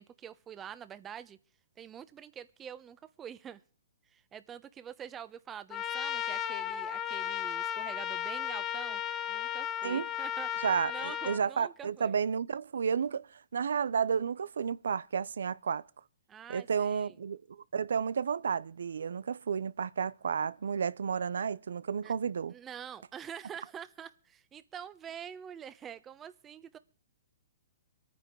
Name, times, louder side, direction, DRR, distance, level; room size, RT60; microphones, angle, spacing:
voice 1, 0.0-1.4 1.8-3.6 4.1-9.0 9.3-12.1 16.3-17.1 22.0-22.1 22.5-26.8, right 8 dB, 15° right, 1.1 m, -46 dB
Trumpet, 5.7-11.4, left 10 dB, 20° left, 1.0 m, -35 dB
voice 2, 10.6-13.3 13.5-15.8 16.5-17.4 17.7-22.5, right 6 dB, 85° right, 0.8 m, -31 dB
24.0 x 9.6 x 4.8 m
hypercardioid pair, 145°, 0 cm